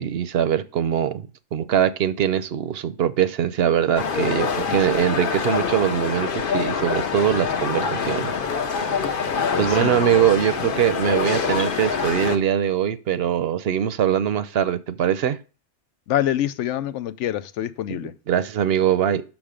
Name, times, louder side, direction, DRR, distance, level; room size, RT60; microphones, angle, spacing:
voice 1, 0.0-8.3 9.0-9.2 9.6-15.4 18.3-19.2, right 9 dB, 65° right, 0.8 m, -22 dB
sound 1, 4.0-12.4, left 5 dB, 50° left, 0.9 m, -25 dB
voice 2, 9.5-10.5 16.1-18.1, left 11 dB, 90° left, 0.9 m, -26 dB
6.2 x 6.2 x 5.0 m
omnidirectional pair, 1.2 m